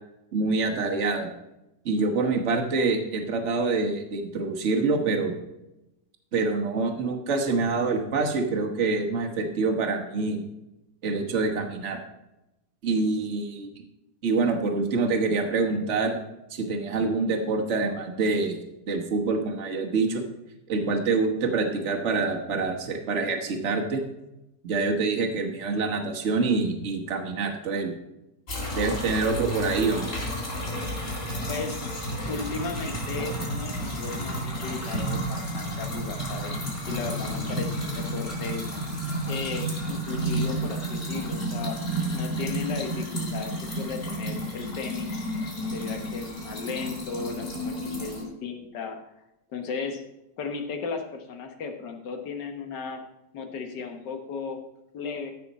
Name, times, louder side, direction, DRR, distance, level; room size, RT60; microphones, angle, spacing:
voice 1, 0.3-1.3 1.8-5.3 6.3-10.4 11.0-12.0 12.8-13.7 14.2-16.2 16.5-18.5 18.9-20.2 20.7-24.0 24.6-27.9 28.7-30.1, right 3 dB, 45° right, 3 dB, 1.5 m, -26 dB
sound 1, 28.5-48.2, right 1 dB, 45° left, 3.7 m, -31 dB
voice 2, 31.5-36.5 36.9-38.6 39.2-41.9 42.1-45.3 45.7-49.0 49.5-50.0 50.4-53.0 53.3-54.6 54.9-55.3, left 5 dB, 80° left, 5 dB, 1.8 m, -35 dB
14.0 x 6.0 x 4.1 m, 0.91 s
omnidirectional pair, 1.9 m